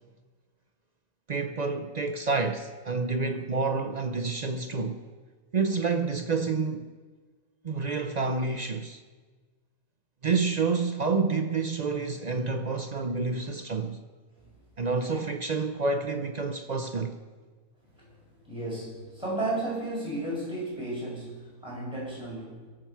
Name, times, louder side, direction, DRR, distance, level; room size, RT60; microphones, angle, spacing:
voice 1, 1.3-5.1 5.5-6.9 7.6-9.0 10.2-14.0 14.8-17.2, right 4 dB, 50° right, 0.5 m, -28 dB
voice 2, 18.4-22.7, right 2 dB, 5° right, 5.8 m, -34 dB
22.5 x 7.6 x 5.8 m
omnidirectional pair, 1.4 m